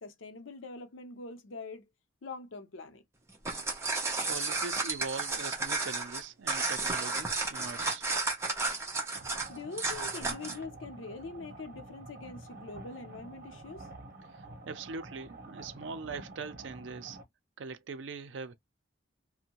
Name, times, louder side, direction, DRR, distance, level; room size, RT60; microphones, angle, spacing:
voice 1, 0.0-1.8 2.2-3.0 9.5-13.9, left 3 dB, 85° left, 0.7 m, -43 dB
sound 1, 3.3-10.6, right 3 dB, 15° right, 0.7 m, -32 dB
voice 2, 4.3-8.1 14.3-17.2 17.6-18.5, right 4 dB, 70° right, 0.5 m, -41 dB
sound 2, 9.1-17.2, right 2 dB, 50° right, 0.9 m, -48 dB
2.6 x 2.1 x 2.9 m
head